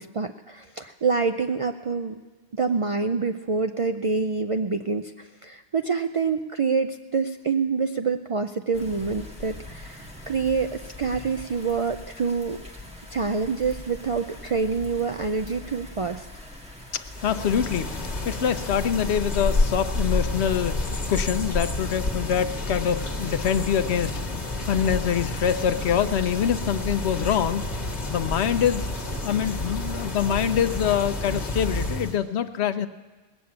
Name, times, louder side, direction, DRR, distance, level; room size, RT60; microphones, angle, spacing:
voice 1, 0.0-2.2 2.5-5.1 5.4-12.6 13.1-16.3, right 4 dB, 50° right, 7 dB, 0.4 m, -26 dB
sound 1, 8.7-18.9, left 2 dB, 5° right, 1.6 m, -43 dB
voice 2, 16.9-17.9 18.2-24.2 24.7-27.6 28.1-28.9 29.2-32.9, left 8 dB, 80° left, 11 dB, 0.9 m, -25 dB
sound 2, 17.0-32.2, left 2 dB, 40° left, 1.5 m, -29 dB
19.5 x 7.1 x 8.7 m, 1.3 s
omnidirectional pair, 1.1 m